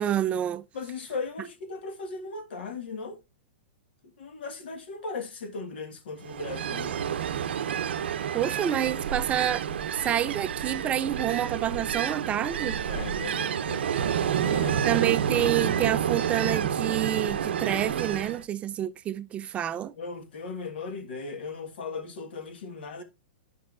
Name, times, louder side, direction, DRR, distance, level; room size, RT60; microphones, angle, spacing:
voice 1, 0.0-0.6 8.3-9.7 10.0-12.8 14.8-19.9, right 11 dB, 20° right, 0.3 m, -28 dB
voice 2, 0.7-3.2 4.0-7.0 12.9-14.0 14.4-15.0 19.9-23.0, left 4 dB, 70° left, 1.5 m, -37 dB
Ocean, 6.2-18.4, right 8 dB, 75° right, 0.6 m, -29 dB
10.0 x 5.5 x 2.4 m
hypercardioid pair, 130°, 6 cm